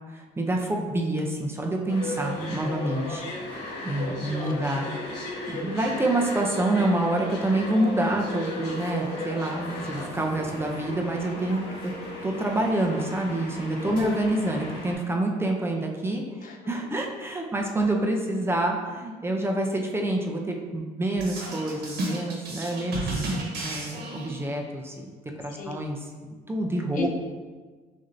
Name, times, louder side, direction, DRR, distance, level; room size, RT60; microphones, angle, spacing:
voice 1, 0.1-3.2 3.8-11.9 12.2-25.1 25.4-27.1, right 1 dB, 15° right, 1 dB, 0.5 m, -27 dB
sound 1, 1.9-14.9, left 1 dB, 85° left, 1.3 m, -36 dB
voice 2, 4.1-4.8 13.9-14.3 16.4-16.6 25.5-25.8 26.9-27.1, left 5 dB, 55° left, 3 dB, 0.5 m, -37 dB
sound 2, 21.2-24.6, right 2 dB, 70° right, 1.3 m, -32 dB
6.4 x 2.7 x 2.6 m, 1.4 s
cardioid pair, 110°, 17 cm